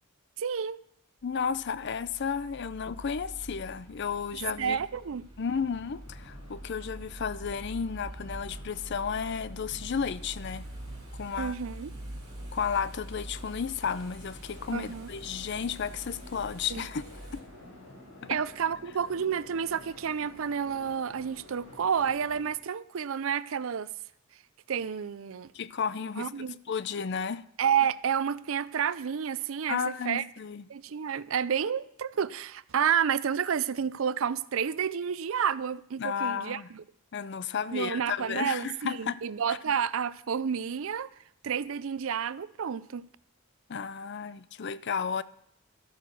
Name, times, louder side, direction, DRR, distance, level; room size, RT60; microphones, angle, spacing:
voice 1, 0.4-0.8 4.6-5.2 11.4-11.9 14.7-15.1 16.7-16.8 18.3-23.9 24.7-25.5 26.2-26.6 27.6-30.2 30.7-36.8 37.7-38.7 39.0-41.1 41.4-43.0, right 7 dB, 70° right, 0.5 m, -30 dB
voice 2, 1.2-4.8 5.4-10.7 11.1-11.5 12.5-17.0 17.3-17.4 18.2-18.4 25.5-26.3 26.7-27.4 29.7-30.6 36.0-36.7 37.1-39.2 39.5-39.6 43.7-45.2, left 6 dB, 55° left, 0.5 m, -33 dB
sound 1, 1.2-17.4, right 1 dB, 20° right, 2.3 m, -45 dB
sound 2, 5.4-22.5, left 1 dB, 85° left, 5.8 m, -51 dB
13.0 x 9.2 x 6.1 m
head